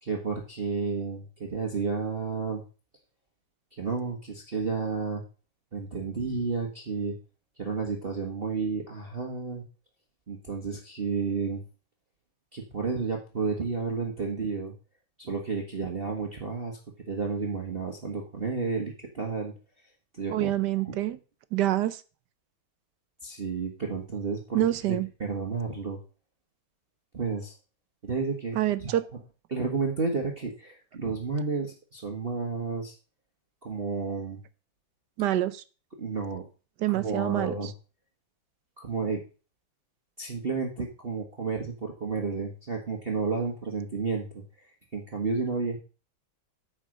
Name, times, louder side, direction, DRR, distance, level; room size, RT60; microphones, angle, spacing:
voice 1, 0.0-2.6 3.8-5.2 5.7-7.2 7.6-9.6 10.3-11.6 12.5-14.7 15.2-16.8 17.1-19.5 20.1-20.5 20.8-21.0 23.2-26.0 27.1-27.5 28.0-29.0 29.5-32.9 33.6-34.4 36.0-36.4 36.9-37.7 38.8-39.2 40.2-44.4 44.9-45.8, right 4 dB, 30° right, 1.4 m, -31 dB
voice 2, 20.3-21.2 21.5-22.0 24.5-25.1 28.6-29.0 35.2-35.6 36.8-37.5, right 14 dB, 70° right, 1.1 m, -26 dB
9.2 x 5.1 x 6.4 m
omnidirectional pair, 2.1 m